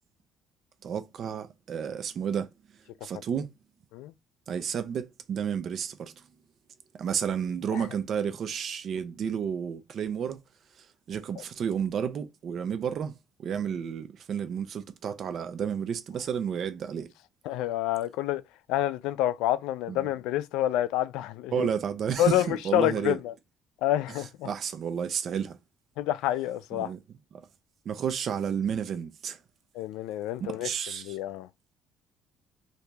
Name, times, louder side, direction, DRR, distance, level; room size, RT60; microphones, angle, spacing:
voice 1, 0.8-2.5 3.0-3.5 4.5-6.1 7.0-10.4 10.8-13.1 13.4-17.1 19.9-20.1 21.5-23.2 24.4-25.6 26.7-27.0 27.9-29.4 30.4-31.2, right 7 dB, 40° right, 0.4 m, -31 dB
voice 2, 17.4-18.4 18.7-21.7 22.2-23.3 23.8-24.5 26.0-26.9 29.7-30.7 31.0-31.5, left 13 dB, 90° left, 0.3 m, -28 dB
2.9 x 2.6 x 3.3 m
cardioid pair, 160°, 0 cm